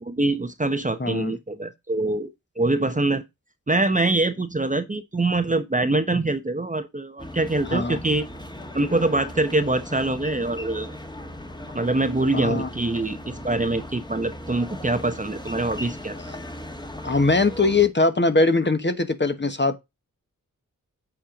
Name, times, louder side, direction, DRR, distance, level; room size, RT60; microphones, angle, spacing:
voice 1, 0.0-2.3 2.6-3.2 3.7-8.3 8.7-10.9 11.7-16.1, right 2 dB, 25° right, 0.9 m, -24 dB
voice 2, 1.0-1.3 7.7-8.0 12.3-12.7 16.1-16.4 17.0-19.8, left 3 dB, 30° left, 1.3 m, -21 dB
sound 1, 7.2-17.9, left 1 dB, 15° left, 1.5 m, -38 dB
8.4 x 4.5 x 5.0 m
wide cardioid pair, 75°, 34 cm